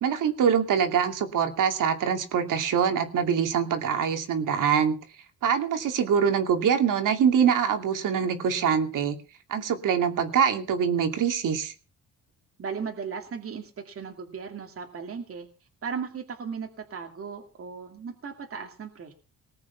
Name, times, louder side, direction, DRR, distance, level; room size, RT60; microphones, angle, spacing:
voice 1, 0.0-5.0 5.4-9.2 9.5-11.7, right 7 dB, 65° right, 6 dB, 2.7 m, -24 dB
voice 2, 12.6-15.5 15.8-19.1, right 6 dB, 40° right, 2 dB, 2.4 m, -36 dB
19.5 x 8.6 x 5.8 m, 0.36 s
cardioid pair, 115°, 34 cm